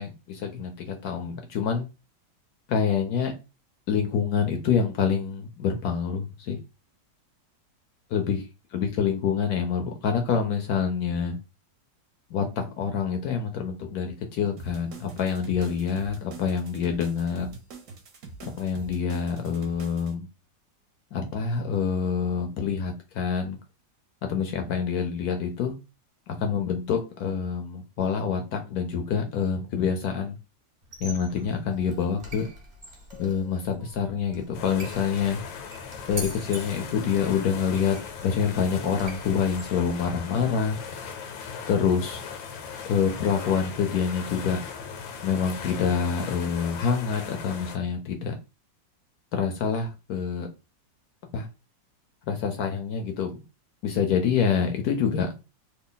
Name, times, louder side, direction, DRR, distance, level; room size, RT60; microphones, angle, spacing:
voice 1, 0.0-1.9 2.7-3.3 3.9-6.6 8.1-8.4 8.7-11.4 12.3-17.5 18.5-20.2 21.1-23.6 24.3-25.7 26.3-30.4 31.0-32.5 33.2-35.4 36.1-38.0 38.2-40.8 41.7-42.2 42.9-44.6 45.2-48.3 49.3-50.5 51.3-51.5 52.3-53.4 53.8-55.3, left 6 dB, 70° left, 5 dB, 0.9 m, -26 dB
sound 1, 14.6-20.1, right 3 dB, 60° right, 1.1 m, -44 dB
Squeak, 30.8-40.4, right 1 dB, 35° right, 0.8 m, -44 dB
sound 2, 34.5-47.8, left 6 dB, 90° left, 1.4 m, -38 dB
3.2 x 2.2 x 3.7 m, 0.28 s
omnidirectional pair, 2.0 m